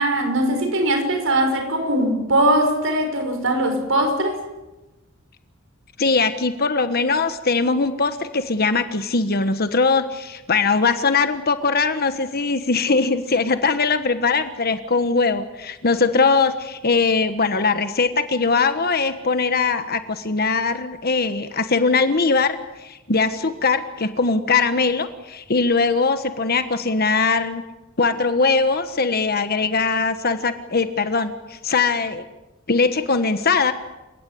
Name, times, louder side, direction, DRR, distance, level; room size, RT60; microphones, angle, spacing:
voice 1, 0.0-4.4, right 1 dB, 65° right, 6 dB, 5.8 m, -20 dB
voice 2, 6.0-22.6 22.8-27.6 28.0-32.2 32.7-33.7, left 4 dB, 50° left, 9 dB, 1.3 m, -21 dB
29.0 x 17.5 x 8.5 m, 1.1 s
head